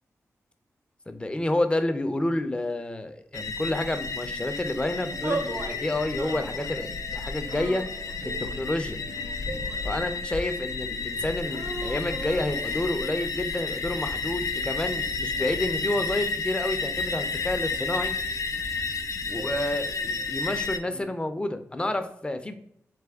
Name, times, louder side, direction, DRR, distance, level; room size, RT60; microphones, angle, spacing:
voice 1, 1.1-7.8 8.2-9.0 9.4-18.1 19.3-22.5, left 1 dB, 20° left, 8 dB, 0.5 m, -29 dB
sound 1, 3.3-20.8, left 4 dB, 75° left, 0.4 m, -31 dB
sound 2, 4.9-21.0, right 2 dB, 80° right, 1.0 m, -47 dB
sound 3, 5.2-5.8 6.2-6.8 7.5-8.4 9.1-10.1 11.5-12.9, right 2 dB, 50° right, 0.6 m, -36 dB
3.7 x 3.4 x 3.5 m, 0.71 s
cardioid pair, 70°, 6 cm